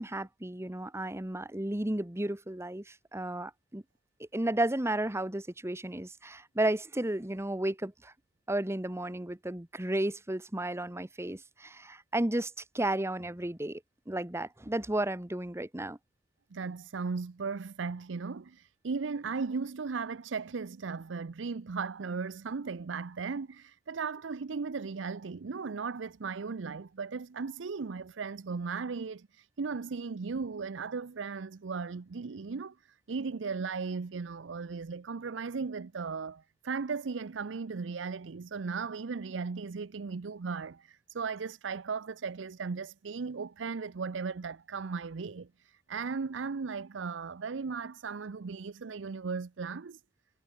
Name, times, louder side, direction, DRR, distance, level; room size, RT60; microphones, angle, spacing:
voice 1, 0.0-3.8 4.2-8.1 8.5-13.8 14.1-16.0, right 1 dB, 15° right, 1.2 m, -33 dB
voice 2, 16.5-50.0, right 5 dB, 85° right, 0.6 m, -37 dB
head